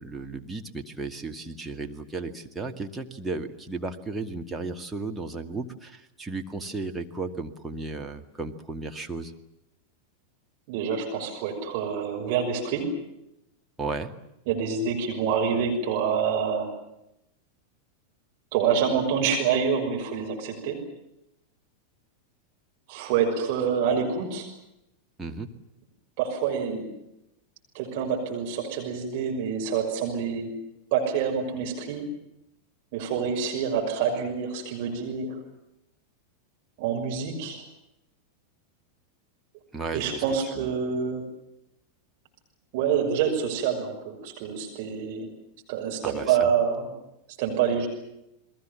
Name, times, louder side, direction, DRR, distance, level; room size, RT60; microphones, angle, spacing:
voice 1, 0.0-9.3 13.8-14.1 25.2-25.5 39.7-40.2 40.5-40.7 46.0-46.5, right 3 dB, 10° right, 3 dB, 2.3 m, -34 dB
voice 2, 10.7-12.9 14.5-16.7 18.5-20.8 22.9-24.5 26.2-26.9 27.7-30.5 30.9-32.0 32.9-35.4 36.8-37.6 39.9-41.2 42.7-45.3 45.7-46.9 47.4-47.9, right 7 dB, 50° right, 2 dB, 6.1 m, -27 dB
30.0 x 22.0 x 7.3 m, 0.86 s
figure-of-eight pair, 90°, 0 cm